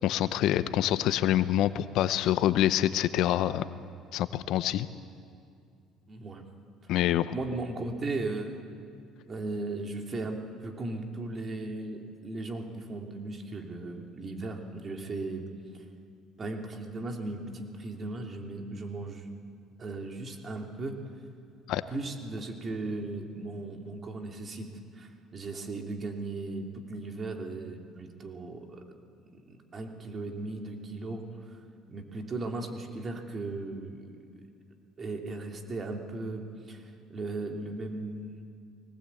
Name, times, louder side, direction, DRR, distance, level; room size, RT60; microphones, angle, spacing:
voice 1, 0.0-3.6 4.1-4.9 6.9-7.3 21.7-21.8, left 12 dB, 70° left, 14 dB, 0.7 m, -26 dB
voice 2, 6.1-6.4 7.3-8.6 9.3-15.5 15.7-15.8 16.4-19.3 19.8-21.0 21.9-28.8 29.2-31.2 31.9-34.3 35.0-36.8 37.1-38.3, right 2 dB, 40° right, 3 dB, 2.9 m, -37 dB
21.0 x 18.5 x 8.5 m, 2.4 s
supercardioid pair, 75°, 0 cm